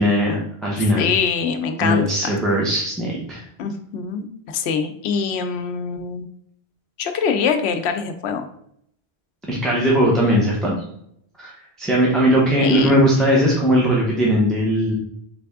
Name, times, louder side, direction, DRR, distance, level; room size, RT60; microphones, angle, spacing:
voice 1, 0.0-1.1 1.8-3.4 9.5-10.7 11.4-11.5 11.8-14.9, equal, ahead, -4 dB, 0.8 m, -19 dB
voice 2, 1.0-2.0 3.6-6.2 7.0-8.5 12.6-12.9, left 6 dB, 80° left, 7 dB, 0.8 m, -24 dB
4.1 x 3.4 x 3.5 m, 0.70 s
omnidirectional pair, 1.1 m